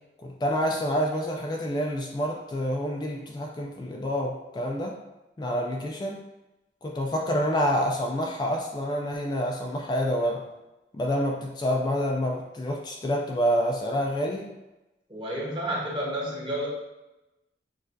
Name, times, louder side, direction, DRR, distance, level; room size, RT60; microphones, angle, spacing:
voice 1, 0.2-5.0 5.4-6.2 6.8-10.4 10.9-14.5, equal, 25° left, 0 dB, 0.3 m, -27 dB
voice 2, 15.1-16.7, right 1 dB, 30° right, -4 dB, 1.2 m, -30 dB
6.3 x 2.4 x 2.6 m, 0.99 s
head